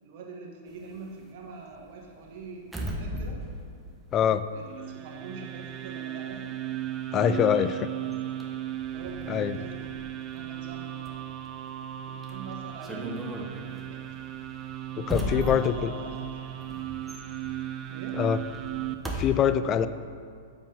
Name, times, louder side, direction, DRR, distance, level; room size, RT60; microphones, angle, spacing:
voice 1, 0.0-3.4 4.5-4.7 4.9-6.5 7.2-7.7 8.9-9.9 10.3-11.2 12.1-14.0 15.1-16.7 17.9-18.2, right 4 dB, 55° right, 0 dB, 1.5 m, -43 dB
sound 1, 0.7-5.1 5.4-19.3, equal, 5° right, 0.9 m, -39 dB
voice 2, 4.1-4.4 7.1-7.7 9.3-9.6 15.0-15.7 18.1-18.4 19.1-19.9, left 9 dB, 30° left, 13 dB, 0.3 m, -24 dB
sound 2, 4.6-18.9, right 12 dB, 30° right, 0.5 m, -36 dB
7.2 x 4.7 x 5.5 m, 2.3 s
hypercardioid pair, 115°, 0 cm